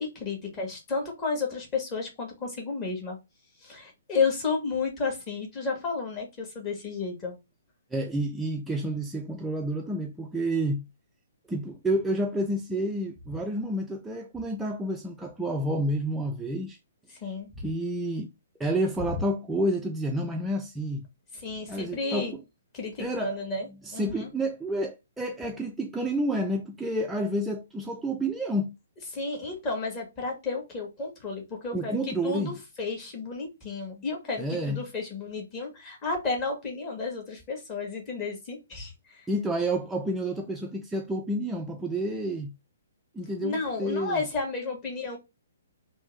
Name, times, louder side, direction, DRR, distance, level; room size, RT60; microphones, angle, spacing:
voice 1, 0.0-3.2 3.6-7.4 17.1-17.6 19.1-19.2 21.3-22.3 22.7-24.3 29.1-39.3 43.4-45.2, left 4 dB, 25° left, 1.5 m, -32 dB
voice 2, 7.9-10.9 11.5-16.8 17.6-18.3 18.6-21.0 21.7-22.4 23.0-28.7 31.7-32.5 33.9-34.0 34.4-34.8 39.3-42.5 43.1-44.2, right 1 dB, 5° right, 0.4 m, -29 dB
3.5 x 2.7 x 3.1 m
figure-of-eight pair, 125°, 0 cm